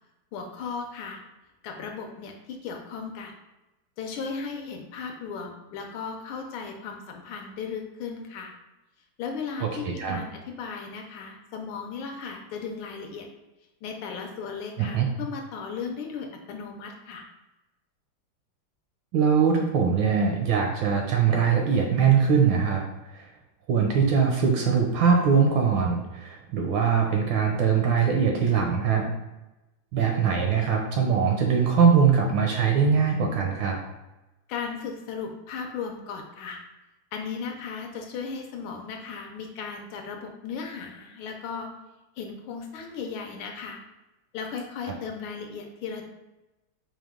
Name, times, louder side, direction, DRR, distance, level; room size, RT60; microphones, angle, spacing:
voice 1, 0.3-1.2 1.6-3.4 4.0-8.5 9.2-13.3 13.8-17.2 34.5-36.6 37.1-41.7 42.2-43.8 44.3-46.1, left 5 dB, 75° left, 3 dB, 1.3 m, -36 dB
voice 2, 9.6-10.2 14.8-15.1 19.1-22.8 23.1-23.3 23.7-29.1 29.9-33.8, right 6 dB, 75° right, 1 dB, 1.2 m, -22 dB
4.7 x 2.2 x 3.5 m, 1.0 s
omnidirectional pair, 2.4 m